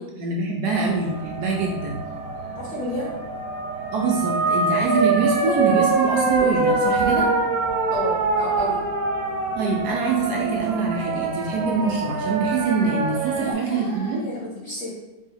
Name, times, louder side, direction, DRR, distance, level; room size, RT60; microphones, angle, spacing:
voice 1, 0.2-2.1 3.9-7.3 9.6-14.2, right 4 dB, 70° right, -1 dB, 1.0 m, -24 dB
sound 1, 0.7-13.5, right 3 dB, 90° right, 1.6 m, -24 dB
voice 2, 2.6-3.1 7.9-8.8 13.3-15.0, left 2 dB, 60° left, -5 dB, 0.8 m, -31 dB
3.7 x 3.3 x 4.1 m, 1.1 s
omnidirectional pair, 2.1 m